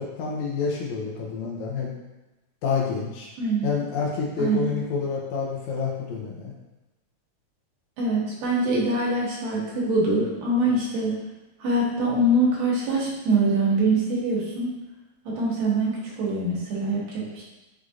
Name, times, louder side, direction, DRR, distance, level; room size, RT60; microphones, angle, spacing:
voice 1, 0.0-1.9 2.6-3.3 3.6-6.5, left 5 dB, 75° left, -2 dB, 1.8 m, -28 dB
voice 2, 3.4-3.7 4.4-4.7 8.0-11.1 11.6-14.7 15.4-17.4, right 2 dB, 85° right, -5 dB, 2.6 m, -24 dB
6.3 x 2.6 x 2.4 m, 1.1 s
omnidirectional pair, 3.9 m